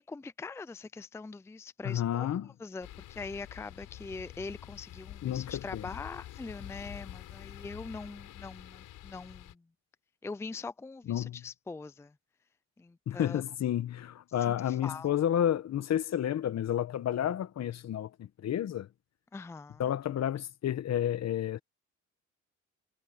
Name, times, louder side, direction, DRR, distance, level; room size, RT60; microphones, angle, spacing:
voice 1, 0.0-2.3 2.6-9.7 10.2-12.2 12.8-13.4 14.4-15.1 19.3-19.9, left 4 dB, 10° left, 0.4 m, -43 dB
voice 2, 1.8-2.5 5.2-5.8 11.1-11.4 13.1-18.9 19.8-21.6, left 10 dB, 60° left, 1.1 m, -31 dB
sound 1, 2.8-9.5, left 13 dB, 85° left, 4.6 m, -47 dB
cardioid pair, 90°, 30 cm